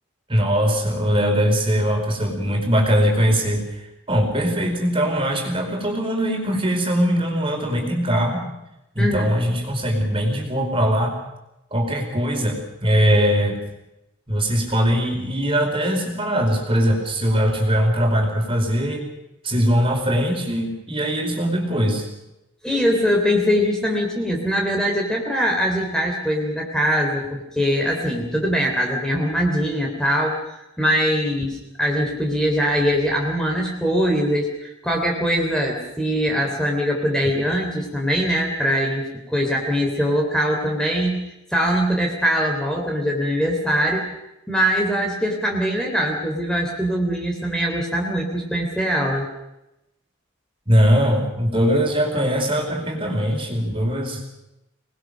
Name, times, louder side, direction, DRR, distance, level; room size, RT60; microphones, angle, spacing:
voice 1, 0.3-8.4 8.9-11.2 11.7-13.6 14.3-19.0 19.4-22.1 50.7-54.2, equal, 25° right, 3 dB, 4.7 m, -21 dB
voice 2, 9.0-9.3 22.6-41.2 41.5-44.1 44.5-49.3, equal, 5° left, 0 dB, 3.5 m, -22 dB
27.0 x 20.5 x 6.5 m, 0.89 s
head